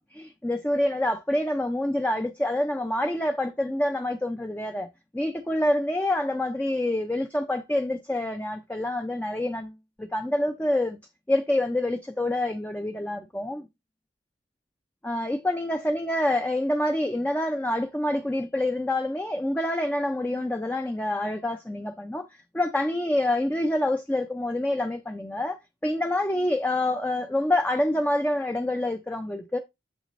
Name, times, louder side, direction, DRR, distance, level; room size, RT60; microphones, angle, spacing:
voice 1, 0.1-4.9 5.1-11.0 11.3-13.7 15.0-22.3 22.5-29.6, left 1 dB, 10° left, 0.4 m, -27 dB
7.4 x 6.1 x 2.5 m
head